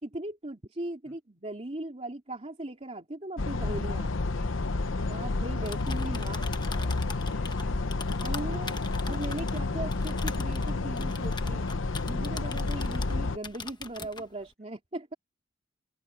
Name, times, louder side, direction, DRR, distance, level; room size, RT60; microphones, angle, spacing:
voice 1, 0.0-4.1 5.1-6.5 8.2-8.8 9.1-11.6 12.0-15.1, right 1 dB, 35° right, 2.9 m, -38 dB
sound 1, 3.4-13.4, left 3 dB, 85° left, 0.9 m, -30 dB
Typing, 5.5-13.2 13.4-14.3, left 4 dB, 25° left, 1.1 m, -41 dB
voice 2, 6.1-8.0 14.4-14.5, equal, 5° left, 7.4 m, -56 dB
open air
head